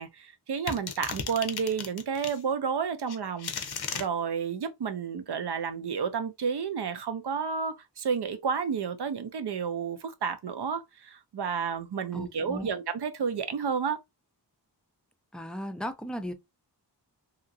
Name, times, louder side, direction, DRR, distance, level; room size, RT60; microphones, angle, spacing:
voice 1, 0.0-3.5 3.9-14.0, right 6 dB, 70° right, 0.6 m, -31 dB
sound 1, 0.7-2.4 3.1-4.1, left 6 dB, 70° left, 0.5 m, -35 dB
voice 2, 12.1-12.7 15.3-16.3, equal, ahead, 0.4 m, -36 dB
2.9 x 2.4 x 2.5 m
wide cardioid pair, 70°, 41 cm